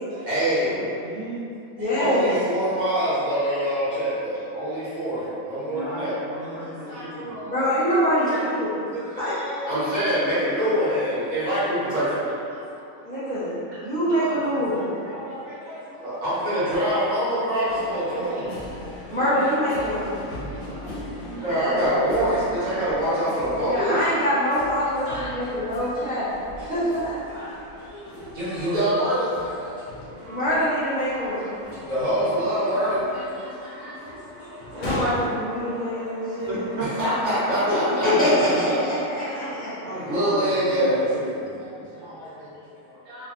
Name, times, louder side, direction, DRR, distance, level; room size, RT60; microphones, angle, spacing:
voice 1, 0.1-0.7 1.8-6.1 6.6-7.5 8.3-8.4 8.9-12.6 14.1-14.4 14.7-18.5 19.0-19.5 19.8-20.0 20.7-20.9 21.3-24.0 25.0-25.6 26.1-26.2 27.3-27.5 27.9-29.7 30.0-30.2 31.1-34.1 34.7-34.9 36.9-39.2 39.5-39.6 40.0-41.1 41.6-43.2, equal, 35° right, -12 dB, 1.0 m, -26 dB
voice 2, 0.6-1.4 5.6-7.4 14.4-15.0 20.6-22.9 32.1-32.4 36.5-38.5 39.8-41.5, equal, 65° right, -8 dB, 1.1 m, -34 dB
voice 3, 1.8-2.3 7.5-8.7 9.1-9.3 13.0-14.9 19.1-20.2 23.5-26.3 26.7-27.2 30.3-31.5 34.7-36.6 37.7-37.8 38.0-39.7, equal, 10° left, -12 dB, 0.6 m, -24 dB
sound 1, 17.7-37.2, left 1 dB, 70° left, 0.8 m, -39 dB
Brass instrument, 30.0-40.8, right 1 dB, 90° right, 1.0 m, -42 dB
2.6 x 2.3 x 2.4 m, 2.6 s
omnidirectional pair, 1.4 m